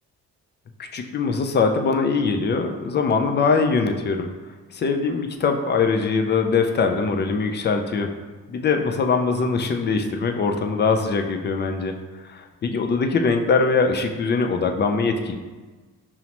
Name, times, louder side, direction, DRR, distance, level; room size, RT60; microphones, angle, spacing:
voice 1, 0.8-4.3 4.7-8.1 8.5-11.9 12.2-15.4, left 4 dB, 35° left, 4 dB, 0.4 m, -22 dB
5.5 x 2.1 x 2.9 m, 1.3 s
cardioid pair, 90°, 30 cm